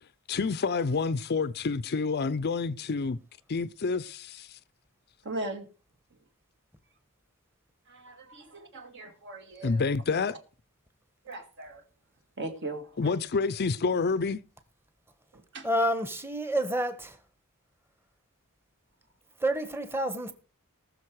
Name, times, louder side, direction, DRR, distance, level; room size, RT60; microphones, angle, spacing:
voice 1, 0.3-3.2 3.5-4.6 9.6-10.4 13.0-14.4, left 4 dB, 45° left, 0.5 m, -28 dB
voice 2, 5.2-5.7 7.9-9.8 11.2-11.8 12.4-13.2 15.3-15.7, right 2 dB, 55° right, 2.1 m, -39 dB
voice 3, 15.6-17.2 19.4-20.3, right 1 dB, 10° right, 1.3 m, -28 dB
19.0 x 6.5 x 4.8 m
head